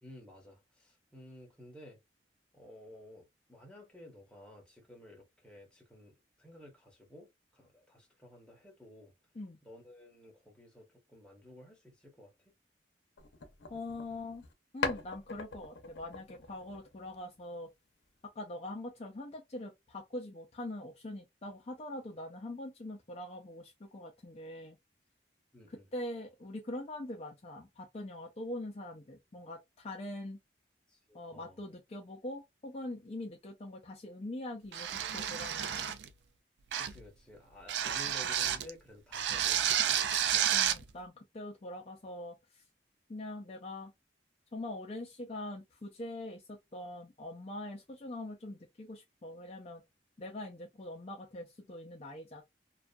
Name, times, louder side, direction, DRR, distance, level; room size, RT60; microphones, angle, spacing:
voice 1, 0.0-2.0 2.5-9.1 9.6-12.3 25.5-25.8 30.9-31.6 36.8-40.2, left 1 dB, 5° left, 0.8 m, -54 dB
sound 1, 13.2-14.5 14.8-17.4, left 4 dB, 80° left, 0.6 m, -41 dB
voice 2, 13.7-14.5 14.7-17.7 18.4-24.8 25.7-30.4 31.1-35.9 40.5-42.6 43.1-43.9 44.5-49.8 50.2-52.4, left 1 dB, 35° left, 0.4 m, -43 dB
sound 2, 34.7-36.1 36.7-37.0 37.7-38.7 39.1-40.8, right 9 dB, 75° right, 0.3 m, -31 dB
2.5 x 2.4 x 2.2 m
head